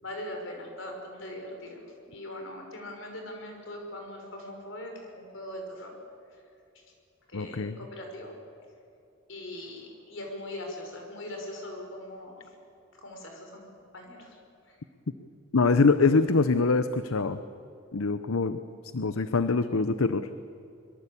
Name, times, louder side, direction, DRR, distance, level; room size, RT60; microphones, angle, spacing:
voice 1, 0.0-5.9 7.3-8.3 9.3-12.5 12.9-13.6 13.9-14.4, left 1 dB, 60° left, 3 dB, 5.6 m, -41 dB
voice 2, 7.3-7.8 15.5-17.4 17.9-18.6 18.9-20.3, left 4 dB, 80° left, 11 dB, 0.8 m, -24 dB
24.5 x 22.5 x 8.5 m, 2.6 s
head